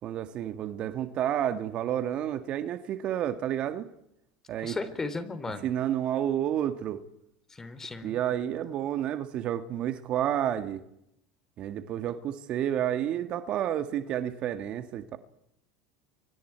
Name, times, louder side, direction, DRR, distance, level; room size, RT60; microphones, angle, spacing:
voice 1, 0.0-3.9 4.5-4.8 5.6-7.0 8.0-10.8 11.6-15.2, right 10 dB, 50° right, 1.9 m, -30 dB
voice 2, 4.6-5.7 7.5-8.2, left 3 dB, 20° left, 3.4 m, -35 dB
28.5 x 24.5 x 4.7 m
hypercardioid pair, 80°, 2 cm